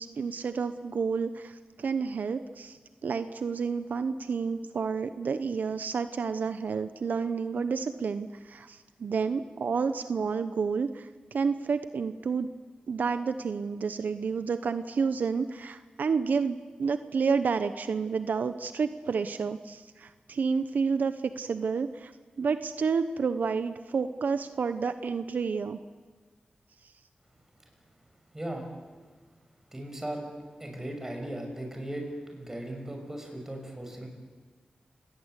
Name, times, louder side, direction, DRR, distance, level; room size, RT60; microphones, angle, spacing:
voice 1, 0.0-12.5 12.9-22.1 22.4-25.8, right 5 dB, 80° right, 11 dB, 0.9 m, -30 dB
voice 2, 28.3-28.7 29.7-34.1, right 1 dB, 15° right, 3 dB, 6.5 m, -37 dB
29.5 x 19.5 x 8.3 m, 1.4 s
wide cardioid pair, 80°, 3 cm